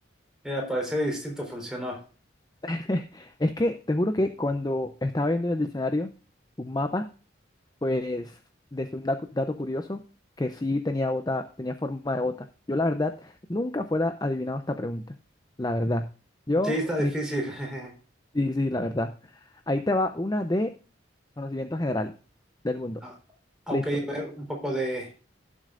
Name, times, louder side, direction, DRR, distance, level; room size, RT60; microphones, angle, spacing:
voice 1, 0.4-2.0 16.6-17.9 23.0-23.1 23.7-25.1, equal, 5° right, 0 dB, 4.0 m, -30 dB
voice 2, 2.6-6.1 6.6-7.1 7.8-8.4 8.7-10.0 10.4-15.0 15.6-16.1 16.5-17.1 18.3-19.1 19.7-20.7 21.4-22.1 22.6-23.0 23.7-23.8, left 1 dB, 20° left, 8 dB, 0.6 m, -28 dB
17.0 x 7.5 x 2.5 m, 0.36 s
head